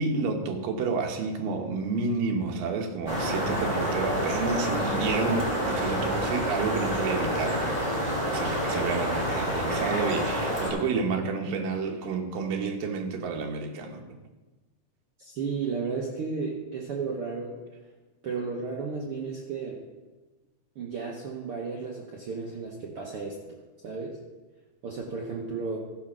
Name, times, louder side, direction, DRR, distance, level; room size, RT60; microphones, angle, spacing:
voice 1, 0.0-7.9 8.2-14.1, right 4 dB, 85° right, 3 dB, 2.8 m, -30 dB
sound 1, 3.1-10.7, equal, 20° right, 2.3 m, -28 dB
voice 2, 15.2-17.6 18.2-19.8 20.7-23.4 23.8-24.2 24.8-25.8, right 4 dB, 70° right, -1 dB, 1.3 m, -33 dB
14.0 x 5.1 x 6.1 m, 1.2 s
omnidirectional pair, 3.9 m